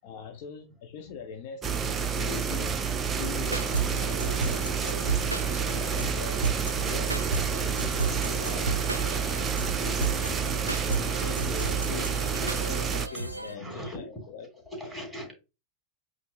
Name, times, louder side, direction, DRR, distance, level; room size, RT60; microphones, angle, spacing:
voice 1, 0.0-2.8 3.1-4.8 5.6-14.5, left 7 dB, 45° left, 0.6 m, -42 dB
sound 1, 1.6-13.1, right 6 dB, 20° right, 0.5 m, -29 dB
sound 2, 3.4-13.5, right 3 dB, 85° right, 0.4 m, -34 dB
sound 3, 7.7-13.5, left 3 dB, 75° left, 1.7 m, -51 dB
voice 2, 13.5-14.3 14.7-15.3, equal, ahead, 2.7 m, -40 dB
8.0 x 2.8 x 2.3 m
figure-of-eight pair, 90°, 0 cm